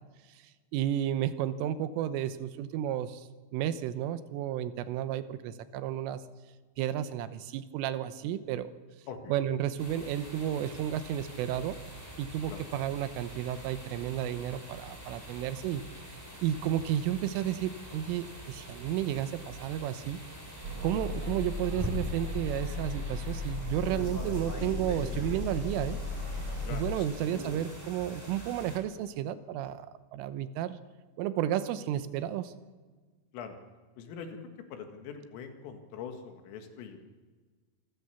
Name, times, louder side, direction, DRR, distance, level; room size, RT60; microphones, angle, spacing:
voice 1, 0.7-6.2 6.8-8.7 9.3-11.8 12.2-15.8 16.4-20.2 20.8-26.0 26.7-30.8 31.2-32.5, right 11 dB, 85° right, 12 dB, 3.5 m, -32 dB
sound 1, 9.8-28.8, right 1 dB, 5° right, 4.0 m, -44 dB
sound 2, 20.6-26.8, left 3 dB, 30° right, 5.3 m, -36 dB
voice 2, 26.6-27.2 33.3-33.6 34.0-34.4 34.7-37.0, left 6 dB, 90° left, 5 dB, 4.6 m, -43 dB
26.5 x 14.5 x 7.0 m, 1.4 s
omnidirectional pair, 5.7 m